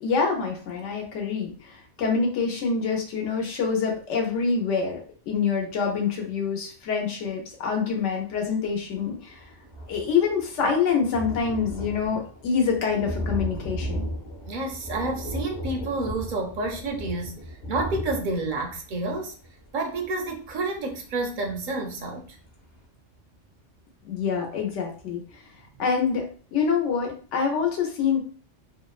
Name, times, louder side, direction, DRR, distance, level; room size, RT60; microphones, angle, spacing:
voice 1, 0.0-5.0 5.3-9.4 9.9-14.1 24.0-25.2 25.8-26.3 26.5-28.2, left 5 dB, 85° left, 1 dB, 1.0 m, -26 dB
Thunder, 9.0-21.6 22.1-22.2 22.5-22.6, equal, 45° left, 0.8 m, -36 dB
voice 2, 14.5-19.3 19.7-22.3, right 2 dB, 60° right, 3 dB, 0.5 m, -29 dB
2.7 x 2.0 x 2.3 m, 0.43 s
omnidirectional pair, 1.2 m